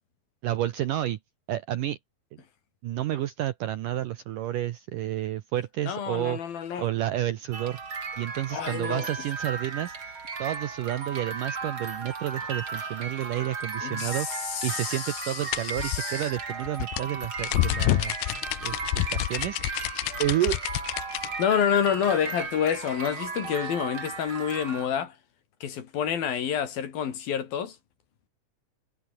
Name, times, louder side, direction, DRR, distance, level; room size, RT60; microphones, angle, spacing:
voice 1, 0.4-1.2 1.5-2.0 2.8-6.4 6.8-7.8 8.2-10.0 10.4-18.3 18.6-19.6 20.2-20.6 23.6-23.7, right 13 dB, 75° right, 2.0 m, -30 dB
voice 2, 5.8-6.9 8.5-9.1 13.8-16.3 21.1-25.2 25.6-27.8, left 8 dB, 60° left, 4.1 m, -28 dB
sound 1, 7.5-24.9, right 4 dB, 30° right, 3.8 m, -36 dB
sound 2, 15.5-21.3, left 20 dB, 80° left, 2.1 m, -28 dB
omnidirectional pair, 4.9 m